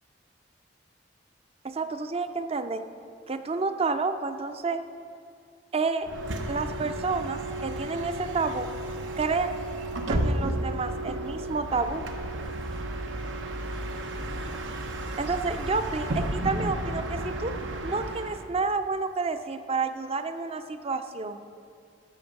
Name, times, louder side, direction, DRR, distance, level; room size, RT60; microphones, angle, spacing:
voice 1, 1.6-2.8 3.3-4.8 5.7-6.1 6.5-8.7 9.2-9.5 10.1-12.0 15.2-17.5 17.8-21.4, right 4 dB, 30° right, 10 dB, 0.5 m, -29 dB
Bus, 6.0-18.5, right 1 dB, 90° right, 0.9 m, -32 dB
13.0 x 6.2 x 5.2 m, 2.4 s
head